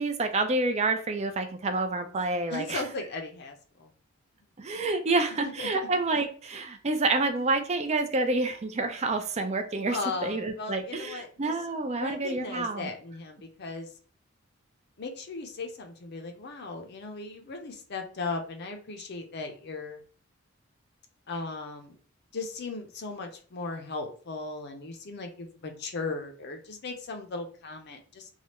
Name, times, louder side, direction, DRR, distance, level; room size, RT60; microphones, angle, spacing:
voice 1, 0.0-2.8 4.6-12.9, right 3 dB, 35° right, 7 dB, 0.4 m, -28 dB
voice 2, 2.5-3.9 5.4-5.9 9.9-11.6 11.9-13.9 15.0-20.0 21.3-22.0 22.3-28.3, left 3 dB, 55° left, 4 dB, 0.6 m, -37 dB
3.2 x 2.3 x 2.8 m, 0.43 s
head